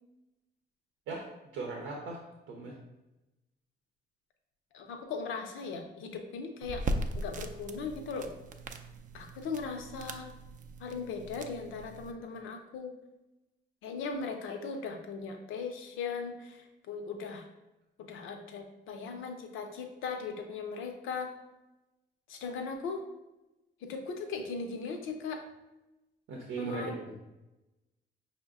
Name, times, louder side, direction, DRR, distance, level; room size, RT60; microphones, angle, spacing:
voice 1, 1.5-2.2 2.5-2.7 26.3-27.1, right 3 dB, 85° right, -1 dB, 0.7 m, -38 dB
voice 2, 4.7-6.8 7.1-8.3 9.1-10.3 10.8-12.9 13.8-17.5 18.0-21.3 22.3-23.0 23.8-25.4 26.6-27.1, left 5 dB, 85° left, 4 dB, 0.6 m, -38 dB
sound 1, 6.6-12.1, right 2 dB, 40° right, 0.4 m, -39 dB
5.1 x 2.1 x 3.6 m, 1.0 s
cardioid pair, 90°, 20 cm